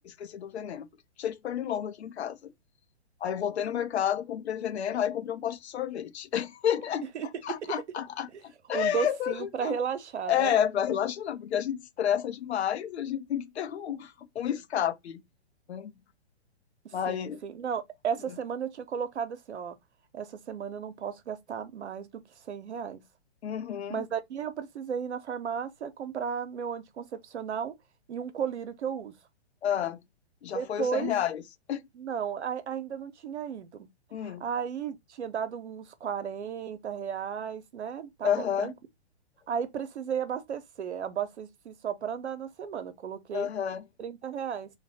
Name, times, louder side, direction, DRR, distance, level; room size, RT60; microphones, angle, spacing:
voice 1, 0.0-0.9 1.2-2.5 3.2-7.0 7.4-9.8 10.3-15.2 15.7-15.9 16.9-17.4 23.4-24.0 29.6-30.0 30.4-31.4 31.7-31.8 34.1-34.4 38.2-38.7 43.3-43.8, left 9 dB, 70° left, 0.7 m, -30 dB
voice 2, 7.1-7.7 8.3-8.4 8.7-10.6 17.1-19.8 20.1-23.0 23.9-27.7 28.1-29.1 30.5-31.1 32.0-33.9 34.2-38.7 39.5-43.5 44.0-44.7, right 7 dB, 80° right, 0.8 m, -34 dB
3.3 x 2.3 x 4.1 m
hypercardioid pair, 135°, 34 cm